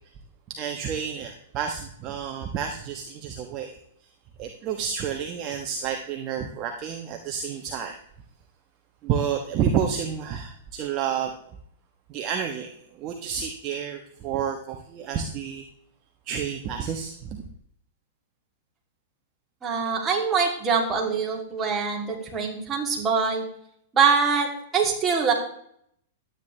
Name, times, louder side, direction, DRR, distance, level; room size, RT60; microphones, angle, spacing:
voice 1, 0.5-3.8 4.4-7.9 9.0-11.3 12.1-15.6 16.2-17.5, right 8 dB, 40° right, 4 dB, 1.1 m, -30 dB
voice 2, 19.6-23.4 23.9-25.3, right 5 dB, 20° right, -1 dB, 2.9 m, -24 dB
11.5 x 9.1 x 3.3 m, 0.67 s
hypercardioid pair, 115°, 0 cm